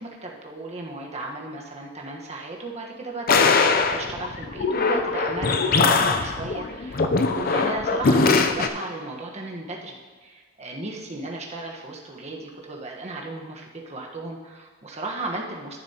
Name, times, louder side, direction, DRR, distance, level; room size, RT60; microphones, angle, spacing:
voice 1, 0.0-15.8, right 2 dB, 35° right, -1 dB, 1.3 m, -35 dB
sound 1, 3.3-8.7, left 4 dB, 50° left, 0.5 m, -21 dB
13.0 x 7.3 x 2.9 m, 1.5 s
head